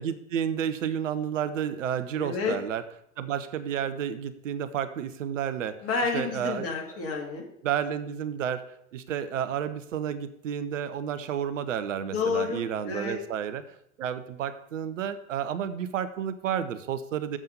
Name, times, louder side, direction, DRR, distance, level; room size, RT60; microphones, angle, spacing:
voice 1, 0.0-2.8 3.2-5.8 6.1-6.7 7.6-8.6 8.9-13.6 14.0-17.4, right 9 dB, 65° right, 11 dB, 0.9 m, -31 dB
voice 2, 2.2-2.6 5.8-7.4 12.0-13.2, left 5 dB, 35° left, 0 dB, 2.7 m, -30 dB
7.4 x 5.5 x 6.7 m, 0.73 s
figure-of-eight pair, 90°, 41 cm